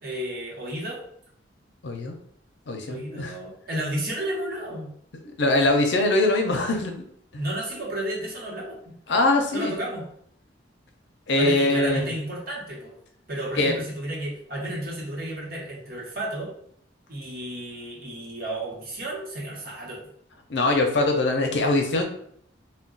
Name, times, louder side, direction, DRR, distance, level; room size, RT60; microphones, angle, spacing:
voice 1, 0.0-1.0 2.9-4.9 7.4-8.8 9.5-10.0 11.3-12.9 13.3-16.5 17.1-20.0, right 1 dB, 55° right, -3 dB, 1.0 m, -32 dB
voice 2, 1.8-2.2 2.7-3.3 5.4-7.0 7.3-7.4 9.1-9.7 11.3-12.1 13.6-13.7 20.5-22.0, left 2 dB, 70° left, 3 dB, 0.5 m, -22 dB
2.3 x 2.2 x 3.8 m, 0.67 s
head